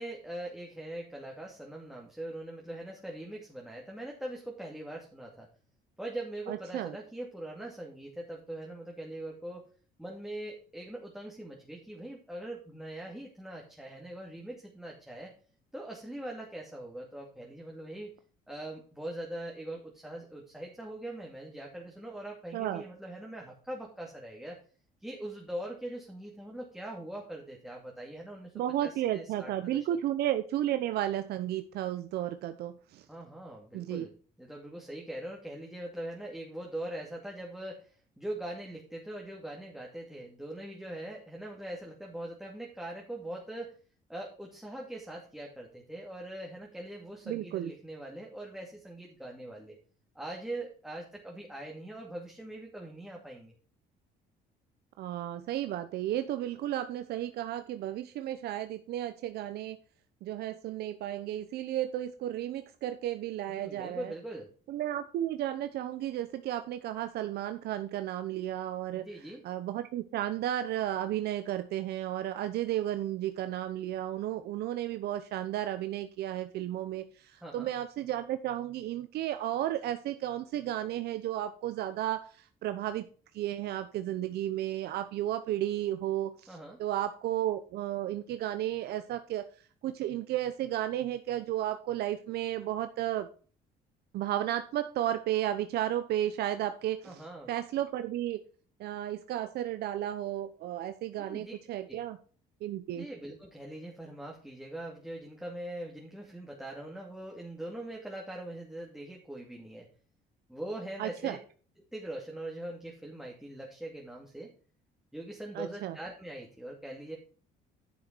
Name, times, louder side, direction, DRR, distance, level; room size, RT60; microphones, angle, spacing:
voice 1, 0.0-5.5 6.0-9.6 10.0-15.3 15.7-18.1 18.5-24.6 25.0-29.9 33.1-34.1 34.4-43.7 44.1-49.8 50.1-53.5 63.5-64.5 68.9-69.4 77.4-77.7 86.5-86.8 97.0-97.5 101.2-101.6 101.9-102.0 102.9-109.9 110.5-111.4 111.9-114.5 115.1-117.2, right 1 dB, 5° right, -2 dB, 2.5 m, -42 dB
voice 2, 6.5-7.0 22.5-22.8 28.5-33.0 33.7-34.1 47.3-47.7 55.0-59.8 60.2-64.1 64.7-69.1 69.4-83.1 83.3-89.4 89.8-93.3 94.1-97.2 97.5-98.4 98.8-102.2 102.6-103.1 111.0-111.4 115.5-116.0, right 12 dB, 70° right, 10 dB, 0.8 m, -33 dB
10.5 x 6.6 x 4.5 m, 0.40 s
cardioid pair, 110°, 17 cm